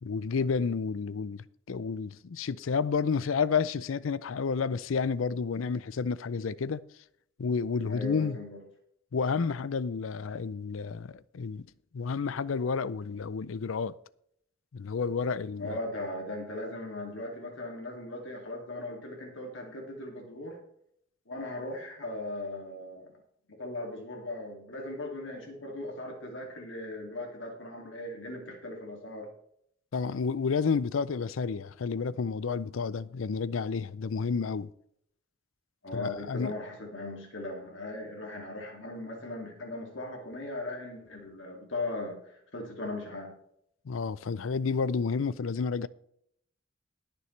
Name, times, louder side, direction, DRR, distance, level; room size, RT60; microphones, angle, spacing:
voice 1, 0.0-6.8 7.4-8.4 9.1-11.7 11.9-14.0 14.7-15.7 29.9-34.7 35.9-36.5 43.9-45.9, left 5 dB, 85° left, 0.5 m, -30 dB
voice 2, 7.8-8.6 15.6-20.6 21.3-23.1 23.6-29.3 35.8-43.3, left 2 dB, 70° left, 2.4 m, -38 dB
20.0 x 6.9 x 3.3 m
head